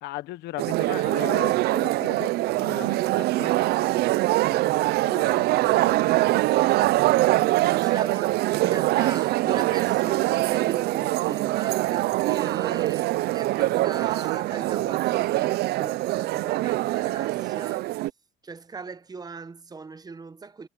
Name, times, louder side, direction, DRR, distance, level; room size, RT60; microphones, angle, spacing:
voice 1, 0.0-4.7 5.0-6.4 7.2-7.7, left 17 dB, 85° left, 1.1 m, -40 dB
sound 1, 0.6-18.1, right 18 dB, 75° right, 0.4 m, -23 dB
voice 2, 7.6-17.9 18.4-20.7, right 4 dB, 25° right, 0.9 m, -39 dB
cardioid pair, 110°, 17 cm